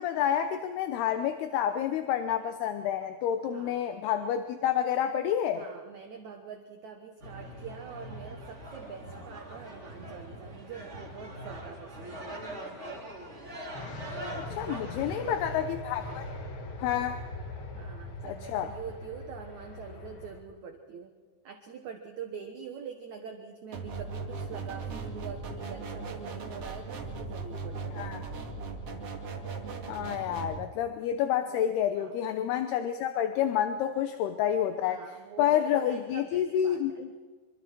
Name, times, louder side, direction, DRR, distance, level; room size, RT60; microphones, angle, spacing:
voice 1, 0.0-5.6 14.4-16.2 16.8-17.2 18.5-18.7 28.0-28.2 29.9-35.0 35.4-37.2, left 10 dB, 75° left, 8 dB, 2.5 m, -29 dB
voice 2, 3.5-3.9 5.5-12.3 14.5-15.7 16.0-16.2 17.7-21.1 21.4-28.2 31.4-32.2 34.8-37.0, right 6 dB, 70° right, 4 dB, 1.7 m, -45 dB
sound 1, 7.2-14.8, right 1 dB, 20° right, 2.5 m, -42 dB
sound 2, 13.7-20.4, left 2 dB, 45° left, 1.7 m, -41 dB
sound 3, 23.7-30.6, right 4 dB, 45° right, 2.2 m, -38 dB
25.5 x 25.0 x 4.6 m, 1.5 s
omnidirectional pair, 5.3 m